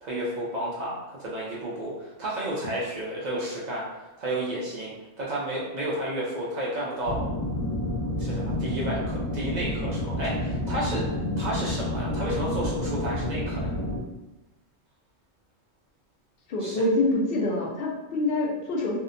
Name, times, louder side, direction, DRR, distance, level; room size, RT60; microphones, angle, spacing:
voice 1, 0.0-3.9 4.2-4.9 5.2-7.2 8.2-11.1 11.4-13.7 16.6-16.8, right 1 dB, 75° right, -6 dB, 0.4 m, -31 dB
sound 1, 7.0-14.0, left 1 dB, 20° left, 1.2 m, -29 dB
voice 2, 16.5-19.0, left 2 dB, 60° left, -2 dB, 0.6 m, -26 dB
2.7 x 2.1 x 2.5 m, 1.0 s
omnidirectional pair, 1.3 m